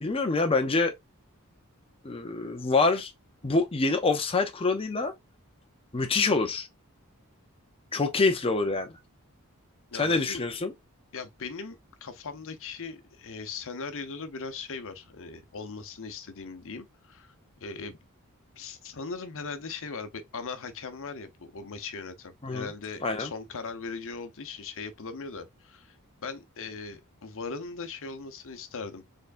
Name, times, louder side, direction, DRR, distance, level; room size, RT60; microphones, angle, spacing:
voice 1, 0.0-0.9 2.0-3.1 3.4-5.1 5.9-6.7 7.9-8.9 9.9-10.7 22.4-22.7 23.0-23.3, left 3 dB, 25° left, 0.6 m, -26 dB
voice 2, 9.9-10.5 11.1-11.8 12.0-17.3 17.6-18.0 18.6-26.0 26.2-29.0, left 4 dB, 65° left, 0.9 m, -39 dB
4.6 x 3.8 x 2.5 m
head